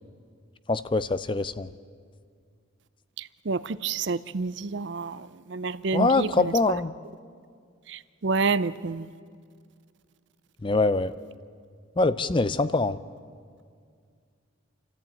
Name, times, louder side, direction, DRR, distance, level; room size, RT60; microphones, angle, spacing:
voice 1, 0.7-1.7 5.9-6.9 10.6-11.1 12.0-13.0, left 3 dB, 25° left, 14 dB, 0.5 m, -24 dB
voice 2, 3.2-6.5 7.9-9.1, right 4 dB, 60° right, 16 dB, 0.5 m, -29 dB
28.0 x 14.0 x 9.0 m, 2.1 s
head